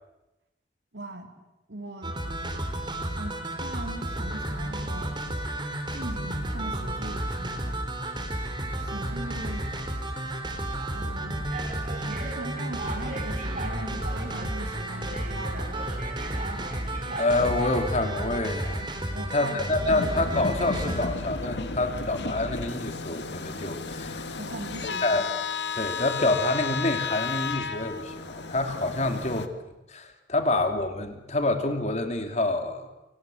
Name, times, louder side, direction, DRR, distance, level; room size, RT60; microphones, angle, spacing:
voice 1, 0.9-2.2 3.2-5.2 5.9-7.8 8.8-9.7 10.9-11.5 12.0-16.0 16.3-17.2 19.1-19.9 24.4-25.3, right 1 dB, 70° right, 5 dB, 3.6 m, -40 dB
sound 1, 2.0-21.1, right 1 dB, 25° right, 3.9 m, -32 dB
sound 2, 8.5-9.0 9.8-10.0 10.8-10.9 11.5-18.8, right 2 dB, 45° right, 5.2 m, -40 dB
voice 2, 17.2-24.3 25.0-25.3 25.7-29.5 29.9-32.9, left 2 dB, 40° left, 7 dB, 2.7 m, -27 dB
sound 3, 19.9-29.5, left 4 dB, 70° left, 1.6 m, -33 dB
28.0 x 24.0 x 7.8 m, 0.97 s
head